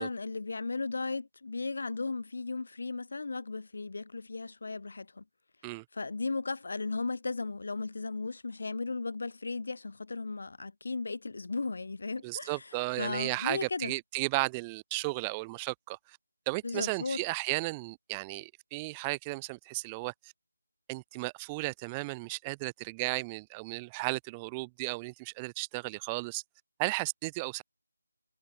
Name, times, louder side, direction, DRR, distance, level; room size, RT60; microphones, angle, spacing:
voice 1, 0.0-5.2 5.9-12.6 13.0-13.9 16.6-17.2, left 3 dB, 55° left, 0.8 m, -36 dB
voice 2, 12.2-16.2 16.5-20.1 20.9-26.4 26.8-27.6, right 25 dB, 15° right, 0.6 m, -34 dB
figure-of-eight pair, 160°, 0 cm